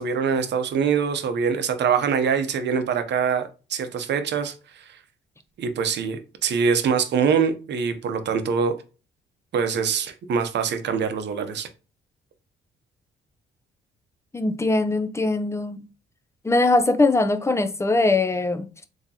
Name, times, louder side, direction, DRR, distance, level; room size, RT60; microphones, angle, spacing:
voice 1, 0.0-5.0 5.6-8.7 9.5-11.7, right 6 dB, 60° right, 0.7 m, -24 dB
voice 2, 14.3-15.8 16.4-18.8, left 2 dB, 15° left, 0.5 m, -21 dB
3.7 x 2.8 x 2.8 m
cardioid pair, 90°, 20 cm